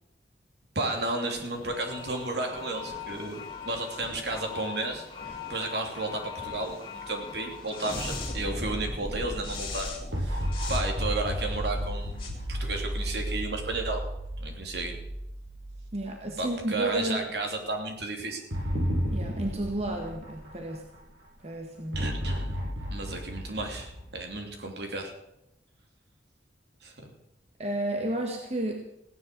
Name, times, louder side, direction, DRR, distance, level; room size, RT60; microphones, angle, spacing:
voice 1, 0.7-5.0 5.5-14.1 14.4-15.0 16.4-18.4 21.9-22.5 22.9-25.1 26.8-27.1, right 2 dB, 65° right, 3 dB, 3.0 m, -33 dB
sound 1, 0.9-13.3, left 3 dB, 30° left, 2.9 m, -39 dB
sound 2, 10.1-16.5 16.8-16.9 18.5-21.0 21.9-24.7, equal, 90° right, 6.8 m, -33 dB
voice 2, 15.9-17.3 19.1-20.9 21.4-22.0 27.6-28.7, right 1 dB, 35° right, 2 dB, 1.7 m, -31 dB
16.0 x 10.5 x 6.9 m, 0.85 s
head